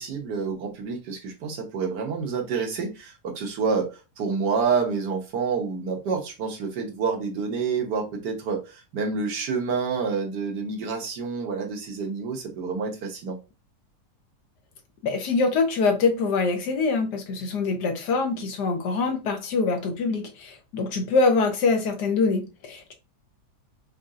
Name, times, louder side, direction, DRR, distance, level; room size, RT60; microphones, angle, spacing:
voice 1, 0.0-13.4, right 5 dB, 80° right, 1.6 m, -28 dB
voice 2, 15.0-22.9, left 4 dB, 80° left, 1.5 m, -24 dB
5.2 x 2.7 x 2.4 m
omnidirectional pair, 1.8 m